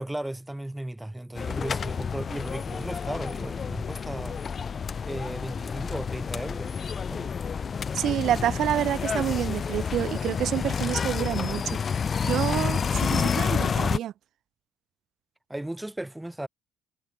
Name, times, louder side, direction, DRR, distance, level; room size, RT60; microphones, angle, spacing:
voice 1, 0.0-4.4 5.0-6.7 7.1-7.3 15.5-16.5, right 1 dB, 5° right, 2.0 m, -35 dB
sound 1, 1.3-14.0, left 6 dB, 30° left, 1.1 m, -29 dB
voice 2, 7.9-11.6 12.2-14.1, right 11 dB, 50° right, 2.9 m, -28 dB
cardioid pair, 145°, 0 cm